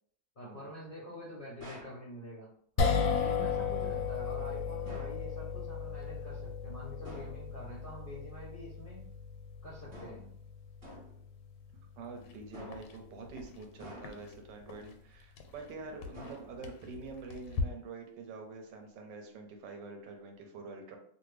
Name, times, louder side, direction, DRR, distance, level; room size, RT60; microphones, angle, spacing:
voice 1, 0.4-2.5 3.2-9.0 9.6-10.2, left 1 dB, 50° left, -6 dB, 0.6 m, -46 dB
sound 1, 1.6-2.0 4.8-5.3 7.0-7.4 9.9-10.3 10.8-11.2 12.5-13.0 13.8-14.4 16.1-16.8, equal, 20° right, 1.0 m, -49 dB
sound 2, 2.8-15.1, left 6 dB, 70° left, 1.0 m, -37 dB
voice 2, 2.9-3.3 12.0-21.0, right 3 dB, 75° right, 3 dB, 1.3 m, -46 dB
sound 3, 12.1-17.6, left 3 dB, 90° left, 1.3 m, -43 dB
2.8 x 2.6 x 3.2 m, 0.63 s
omnidirectional pair, 2.0 m